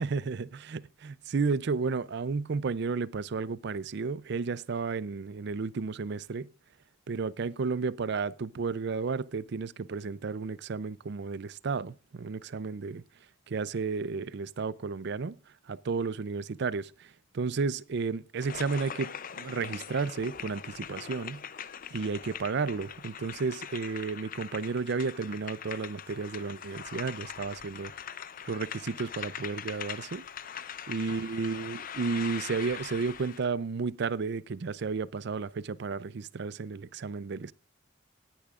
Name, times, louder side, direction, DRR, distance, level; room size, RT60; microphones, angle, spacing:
voice 1, 0.0-6.5 7.1-13.0 13.5-15.4 15.7-19.1 19.4-21.4 21.9-27.9 28.4-30.2 30.9-37.5, right 4 dB, 60° right, 0.5 m, -32 dB
sound 1, 18.4-33.4, left 8 dB, 45° left, 0.6 m, -42 dB
18.5 x 10.5 x 2.4 m
head